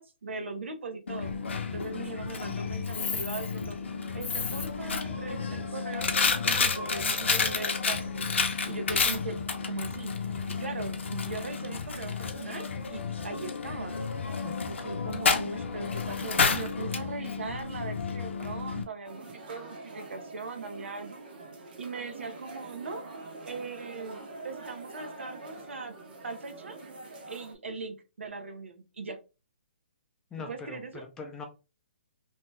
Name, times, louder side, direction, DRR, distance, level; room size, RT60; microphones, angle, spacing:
voice 1, 0.0-1.3 1.7-3.8 4.1-8.3 8.7-9.4 9.6-10.1 10.5-14.0 14.6-21.2 21.8-23.0 23.4-25.9 26.2-26.8 27.3-29.2 30.4-31.0, right 4 dB, 85° right, 6 dB, 0.7 m, -39 dB
Coin (dropping), 1.1-18.8, left 5 dB, 80° left, 0.6 m, -31 dB
sound 1, 19.0-27.6, right 2 dB, 50° right, 0.8 m, -45 dB
voice 2, 30.3-31.5, left 4 dB, 10° left, 2 dB, 0.5 m, -41 dB
2.8 x 2.2 x 3.2 m, 0.29 s
hypercardioid pair, 155°, 6 cm